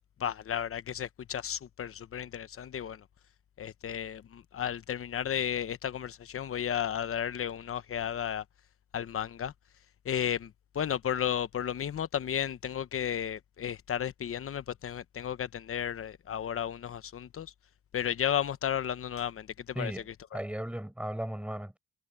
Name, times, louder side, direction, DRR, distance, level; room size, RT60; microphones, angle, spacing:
voice 1, 0.2-3.0 3.6-8.4 8.9-9.5 10.0-17.5 17.9-20.4, left 9 dB, 40° left, 1.0 m, -33 dB
voice 2, 19.7-21.8, right 1 dB, 5° right, 7.7 m, -36 dB
cardioid pair, 120°, 33 cm